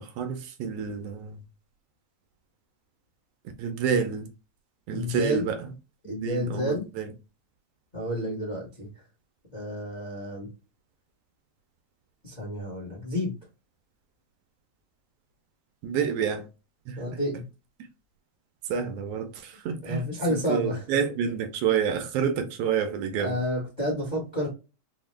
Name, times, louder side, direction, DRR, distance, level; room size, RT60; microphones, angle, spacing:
voice 1, 0.0-1.4 3.6-4.3 4.9-5.7 6.2-7.1 15.8-16.5 16.9-17.2 18.6-23.4, right 7 dB, 90° right, 1.4 m, -29 dB
voice 2, 4.9-5.4 6.0-6.8 7.9-8.9 9.5-10.5 12.2-13.3 17.0-17.4 19.8-20.8 23.2-24.5, left 1 dB, 60° left, 0.4 m, -30 dB
4.6 x 2.1 x 3.1 m
omnidirectional pair, 3.3 m